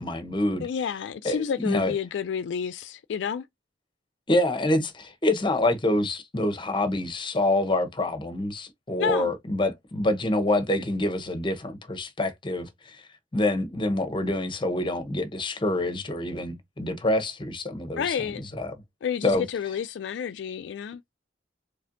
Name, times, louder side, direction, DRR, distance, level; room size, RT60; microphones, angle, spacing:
voice 1, 0.0-0.7 1.2-1.9 4.3-13.0 13.3-18.7 19.2-19.4, left 1 dB, 25° left, 0.9 m, -26 dB
voice 2, 0.6-3.4 9.0-9.3 18.0-18.4 19.0-21.0, left 7 dB, 70° left, 0.3 m, -30 dB
4.2 x 3.3 x 2.5 m
head